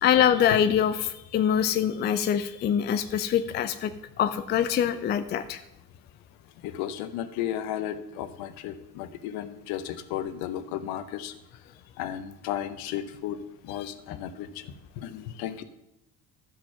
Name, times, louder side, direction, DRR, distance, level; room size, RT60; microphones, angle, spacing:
voice 1, 0.0-3.9 4.2-5.6, left 9 dB, 25° left, 10 dB, 0.4 m, -24 dB
voice 2, 6.6-11.3 12.0-15.6, left 11 dB, 50° left, 12 dB, 0.9 m, -34 dB
12.5 x 6.1 x 5.7 m, 0.87 s
figure-of-eight pair, 60°, 47 cm